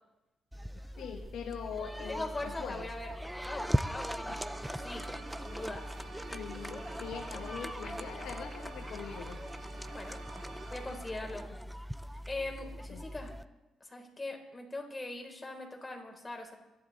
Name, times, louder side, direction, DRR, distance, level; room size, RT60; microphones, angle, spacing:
sound 1, 0.5-13.4, equal, 5° right, 0.5 m, -39 dB
voice 1, 1.0-2.9 6.3-9.4 12.9-13.0, left 7 dB, 75° left, 3 dB, 1.5 m, -42 dB
voice 2, 2.1-5.1 5.4-5.9 9.9-10.2 10.7-11.4 12.3-13.3 13.8-16.5, left 2 dB, 20° left, 1 dB, 3.8 m, -41 dB
sound 2, 4.2-11.0, right 3 dB, 50° right, 6.1 m, -48 dB
25.5 x 11.0 x 4.1 m, 1.0 s
cardioid pair, 90°, 0 cm